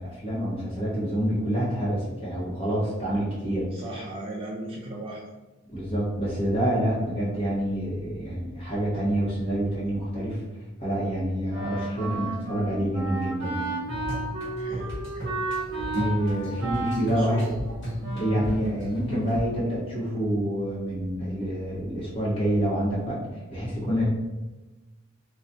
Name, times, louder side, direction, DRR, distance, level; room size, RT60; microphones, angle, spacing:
voice 1, 0.0-3.7 5.7-10.4 10.8-13.7 15.9-17.5 18.1-23.2 23.5-24.0, equal, 25° left, -9 dB, 1.3 m, -27 dB
voice 2, 3.7-5.2 14.6-15.5 15.7-16.0 17.1-17.6, right 1 dB, 25° right, -3 dB, 0.3 m, -37 dB
Wind instrument woodwind instrument, 11.5-18.6, right 2 dB, 60° right, 0.7 m, -33 dB
sound 1, 13.9-19.4, equal, 60° left, 1.3 m, -35 dB
2.9 x 2.4 x 2.7 m, 1.1 s
head